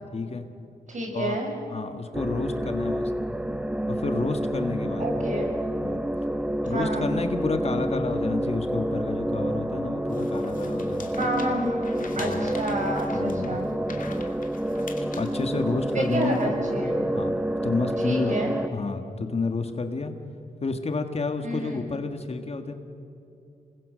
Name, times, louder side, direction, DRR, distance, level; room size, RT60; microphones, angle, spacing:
voice 1, 0.1-0.5 1.1-1.4 1.7-3.1 3.9-5.1 5.8-6.0 6.7-11.4 12.2-12.4 13.1-13.6 15.0-16.5 17.1-18.4 18.7-20.1 20.6-22.7, left 3 dB, 40° left, 7 dB, 1.6 m, -30 dB
voice 2, 0.9-1.5 5.0-5.5 6.7-7.1 11.1-11.8 12.2-13.7 15.9-17.0 18.0-18.6 21.4-21.8, right 1 dB, 55° right, 1 dB, 6.4 m, -30 dB
sound 1, 2.1-18.7, right 1 dB, 5° right, 0.8 m, -28 dB
sound 2, 10.1-16.8, left 4 dB, 60° left, 2.4 m, -44 dB
27.0 x 21.0 x 6.4 m, 2.7 s
cardioid pair, 75°, 15 cm